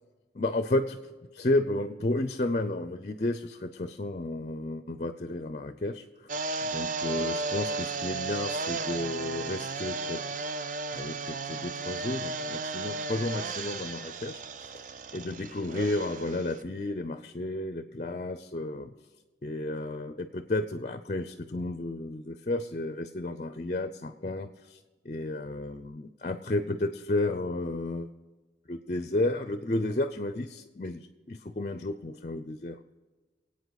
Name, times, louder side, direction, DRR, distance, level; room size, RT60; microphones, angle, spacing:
voice 1, 0.3-6.0 6.6-10.2 10.9-14.4 15.1-18.9 19.4-24.8 25.0-28.1 28.7-32.8, left 2 dB, 40° left, 10 dB, 0.5 m, -32 dB
sound 1, 6.3-16.6, right 3 dB, 45° right, 0.5 m, -34 dB
24.5 x 8.6 x 4.0 m, 1.3 s
head